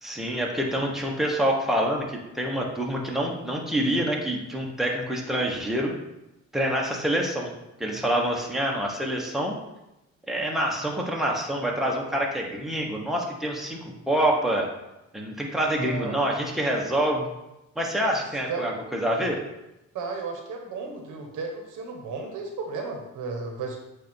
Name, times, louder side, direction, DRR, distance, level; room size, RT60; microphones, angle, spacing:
voice 1, 0.0-5.9 6.5-7.5 7.8-9.5 10.3-14.7 15.1-17.3 17.8-19.4, right 1 dB, ahead, -1 dB, 1.2 m, -26 dB
voice 2, 15.8-16.2 18.5-18.6 19.9-23.8, right 4 dB, 85° right, 2 dB, 1.3 m, -34 dB
8.1 x 2.7 x 4.5 m, 0.93 s
cardioid pair, 90°, 30 cm